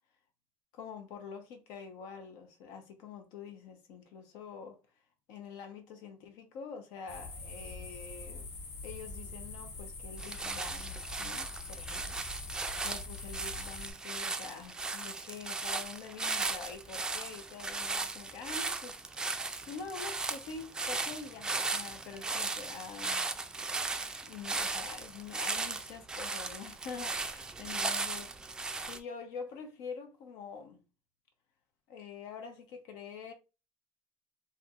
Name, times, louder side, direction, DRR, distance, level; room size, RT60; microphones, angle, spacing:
voice 1, 0.7-4.8 5.3-8.5 8.8-12.5 12.8-23.3 24.2-28.3 28.8-30.8 31.9-33.3, left 5 dB, 85° left, 0.8 m, -46 dB
sound 1, 7.1-13.9, left 3 dB, 60° left, 1.1 m, -44 dB
sound 2, 10.2-29.0, right 3 dB, 10° right, 0.3 m, -37 dB
4.4 x 2.6 x 2.4 m
cardioid pair, 145°, 6 cm